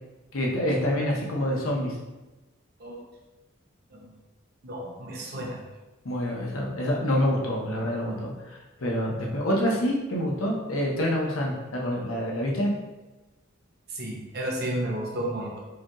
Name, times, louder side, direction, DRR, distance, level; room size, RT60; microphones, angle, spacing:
voice 1, 0.3-2.0 5.3-5.4 6.0-12.7, equal, 90° left, -2 dB, 0.9 m, -27 dB
voice 2, 4.6-5.6 13.9-15.6, right 1 dB, 50° right, -2 dB, 0.8 m, -32 dB
4.9 x 2.4 x 3.0 m, 1.1 s
head